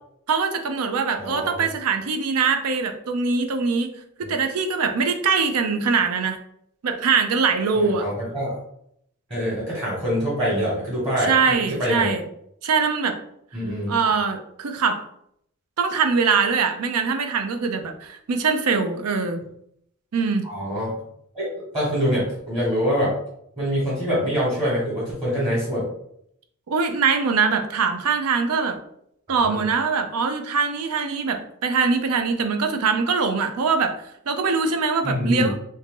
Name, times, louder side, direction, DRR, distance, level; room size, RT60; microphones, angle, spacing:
voice 1, 0.3-6.4 6.8-8.1 11.2-12.2 12.6-13.2 13.9-15.0 15.8-19.4 20.1-20.5 26.7-28.8 29.3-35.6, right 5 dB, 80° right, 6 dB, 0.5 m, -22 dB
voice 2, 1.2-1.6 7.7-8.6 9.3-11.3 11.8-12.1 13.5-13.9 20.4-21.0 21.3-23.1 23.6-25.9 29.4-29.6 35.0-35.5, equal, 20° right, -6 dB, 1.2 m, -25 dB
2.8 x 2.6 x 3.6 m, 0.72 s
head